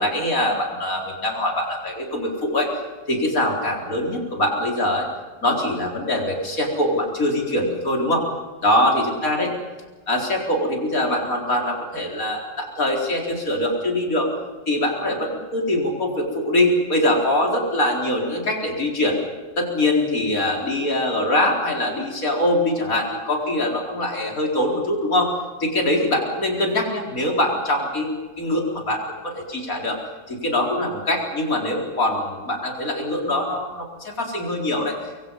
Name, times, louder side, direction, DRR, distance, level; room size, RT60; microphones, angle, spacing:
voice 1, 0.0-2.7 3.1-5.1 5.4-8.3 8.6-9.5 10.1-14.3 14.7-19.2 19.6-25.3 25.6-30.0 30.3-35.1, left 1 dB, 50° left, 0 dB, 4.7 m, -23 dB
25.5 x 23.5 x 5.5 m, 1.3 s
omnidirectional pair, 1.9 m